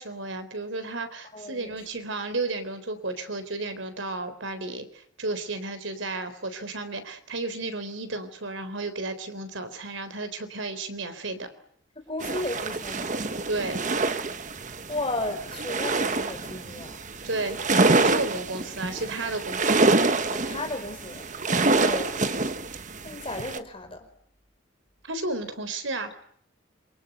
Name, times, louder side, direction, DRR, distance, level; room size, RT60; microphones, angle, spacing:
voice 1, 0.0-11.5 13.5-13.8 17.2-17.6 17.9-19.9 21.8-22.0 25.1-26.1, right 2 dB, 80° right, 10 dB, 4.0 m, -33 dB
voice 2, 1.3-1.9 11.9-13.3 14.9-17.0 20.3-21.3 21.8-22.2 23.0-24.1, left 2 dB, 30° left, 5 dB, 5.0 m, -34 dB
sound 1, 12.2-23.6, right 3 dB, 40° right, 1.3 m, -26 dB
27.5 x 24.0 x 8.1 m, 0.66 s
head